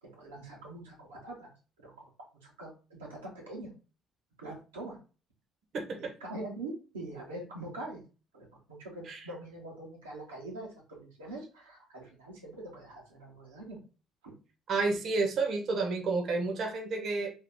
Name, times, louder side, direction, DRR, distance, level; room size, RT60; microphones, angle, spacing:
voice 1, 0.0-2.7 3.0-3.7 4.4-5.0 6.2-8.0 8.3-13.8 14.2-14.3, right 2 dB, 90° right, -3 dB, 1.0 m, -44 dB
voice 2, 5.7-6.1 9.1-9.2 14.7-17.3, right 3 dB, 55° right, 2 dB, 0.9 m, -30 dB
2.7 x 2.4 x 3.5 m, 0.34 s
hypercardioid pair, 55°, 0 cm